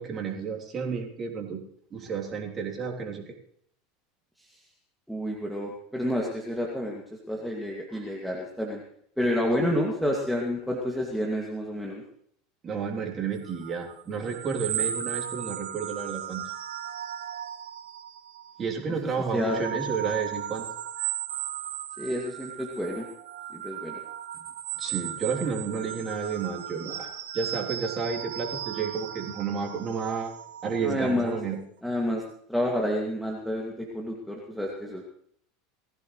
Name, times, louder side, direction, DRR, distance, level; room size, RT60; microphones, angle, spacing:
voice 1, 0.0-1.6 1.9-3.2 9.6-9.7 12.6-16.4 18.6-20.7 24.8-27.1 27.3-30.3 30.6-31.6, right 5 dB, 30° right, 0 dB, 3.3 m, -31 dB
voice 2, 5.1-8.8 9.2-12.0 19.0-19.8 22.0-23.1 23.5-23.9 30.8-31.4 31.8-32.2 32.5-35.0, left 1 dB, ahead, -2 dB, 2.3 m, -29 dB
sound 1, 13.4-18.6 19.1-31.4, right 10 dB, 70° right, 1.1 m, -36 dB
20.0 x 15.0 x 3.2 m, 0.68 s
figure-of-eight pair, 80°, 0 cm